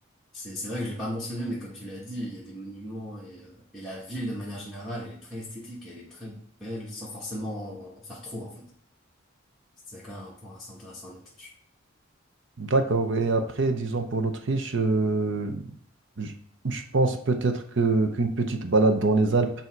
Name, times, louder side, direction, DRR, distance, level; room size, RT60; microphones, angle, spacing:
voice 1, 0.3-8.7 9.9-11.5, equal, ahead, -8 dB, 1.1 m, -37 dB
voice 2, 12.6-15.6 16.2-16.3 16.6-19.5, right 3 dB, 60° right, 6 dB, 0.8 m, -24 dB
8.1 x 2.8 x 4.5 m, 0.66 s
head